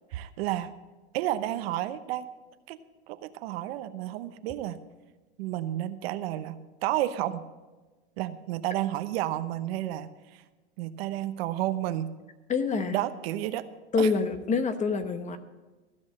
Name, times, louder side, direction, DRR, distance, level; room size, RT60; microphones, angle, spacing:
voice 1, 0.1-0.7 1.1-2.3 2.7-2.8 3.1-4.8 5.4-7.4 8.2-10.4 10.8-12.1 12.9-13.7 14.0-14.1, right 13 dB, 65° right, 11 dB, 0.9 m, -31 dB
voice 2, 12.5-13.0 13.9-15.4, left 4 dB, 20° left, 10 dB, 1.0 m, -26 dB
15.0 x 6.2 x 8.6 m, 1.2 s
supercardioid pair, 120°, 33 cm